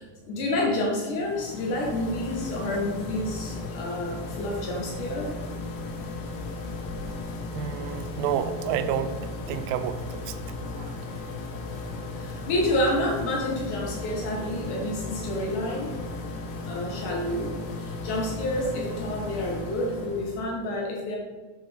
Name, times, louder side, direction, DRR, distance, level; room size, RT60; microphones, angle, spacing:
voice 1, 0.0-5.3 12.1-15.9 16.7-21.2, left 1 dB, 85° left, -1 dB, 1.7 m, -29 dB
sound 1, 1.1-20.5, left 2 dB, 70° left, 3.3 m, -36 dB
voice 2, 7.5-9.2 9.5-10.0, right 9 dB, 80° right, 10 dB, 3.0 m, -28 dB
8.0 x 7.5 x 5.1 m, 1.4 s
omnidirectional pair, 5.8 m